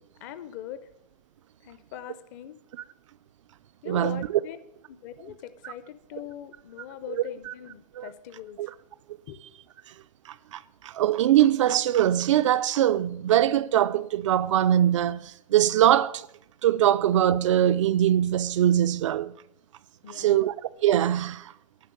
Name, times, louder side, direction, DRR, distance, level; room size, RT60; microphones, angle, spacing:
voice 1, 0.2-0.8 1.6-2.6 3.8-4.6 4.9-8.6 9.3-9.4 20.0-20.5, left 11 dB, 30° left, 0.5 m, -41 dB
voice 2, 3.9-4.3 5.6-5.7 7.5-7.6 8.0-8.1 8.6-8.7 10.5-16.3 16.6-19.3 20.1-20.5 20.8-21.5, right 11 dB, 50° right, 0.4 m, -22 dB
10.0 x 5.7 x 8.3 m
hypercardioid pair, 155°, 21 cm